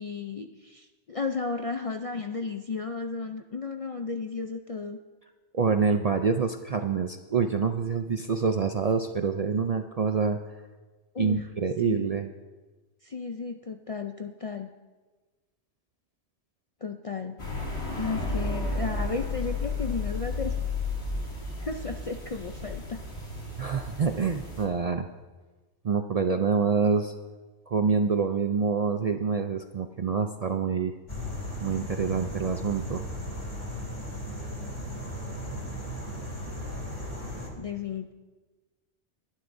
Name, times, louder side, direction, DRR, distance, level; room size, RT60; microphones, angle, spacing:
voice 1, 0.0-5.0 11.1-11.5 11.8-12.2 13.0-14.7 16.8-17.4 18.0-20.6 21.6-23.0 37.6-38.1, left 4 dB, 50° left, 5 dB, 0.4 m, -34 dB
voice 2, 5.5-10.4 11.2-12.3 23.6-25.1 25.8-27.1 27.7-30.9 31.6-33.0, right 5 dB, 50° right, 6 dB, 0.4 m, -26 dB
sound 1, 17.4-24.6, left 3 dB, 70° left, 2.8 m, -33 dB
sound 2, 31.1-37.5, equal, 30° left, 2.5 m, -36 dB
21.5 x 11.5 x 2.6 m, 1.3 s
omnidirectional pair, 1.2 m